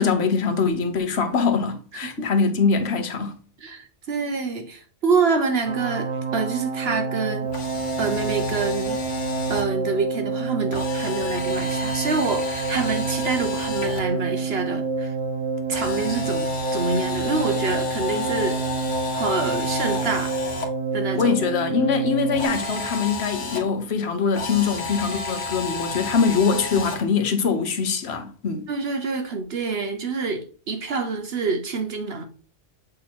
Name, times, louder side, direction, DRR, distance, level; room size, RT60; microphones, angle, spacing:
voice 1, 0.0-3.3 21.1-28.7, left 5 dB, 65° left, 1.1 m, -23 dB
voice 2, 3.6-7.5 8.0-9.0 9.5-15.1 15.7-18.6 19.1-20.4 20.9-21.3 28.7-32.3, right 4 dB, 60° right, 1.0 m, -26 dB
sound 1, 5.7-22.5, right 4 dB, 35° right, 0.6 m, -28 dB
Camera, 7.4-9.6 10.7-14.0 15.7-20.7 22.3-23.6 24.3-27.0, left 3 dB, 80° left, 1.5 m, -31 dB
7.6 x 2.9 x 4.2 m
omnidirectional pair, 1.2 m